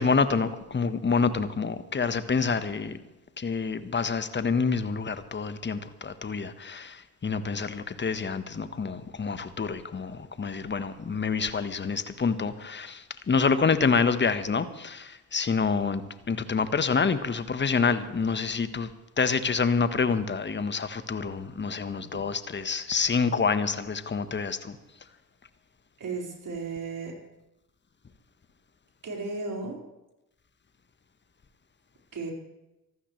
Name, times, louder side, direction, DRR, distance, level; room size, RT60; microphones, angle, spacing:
voice 1, 0.0-3.0 3.4-16.0 16.3-18.9 19.2-24.8, left 5 dB, 25° left, 12 dB, 1.3 m, -27 dB
voice 2, 26.0-27.2 29.0-29.8 32.1-32.3, right 4 dB, 40° right, -1 dB, 4.9 m, -34 dB
25.0 x 12.5 x 3.3 m, 0.99 s
figure-of-eight pair, 50°, 46 cm